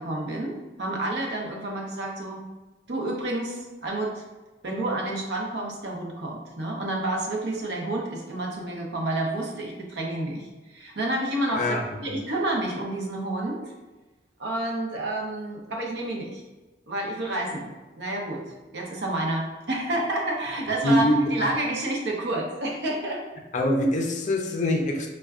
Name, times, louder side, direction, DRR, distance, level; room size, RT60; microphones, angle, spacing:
voice 1, 0.0-2.4 2.9-4.2 4.6-13.6 14.4-16.4 16.9-23.2, right 1 dB, 65° right, 0 dB, 0.6 m, -29 dB
voice 2, 11.5-12.2 20.8-21.5 23.5-25.1, left 1 dB, 40° left, 2 dB, 0.4 m, -24 dB
4.4 x 2.2 x 2.4 m, 1.2 s
head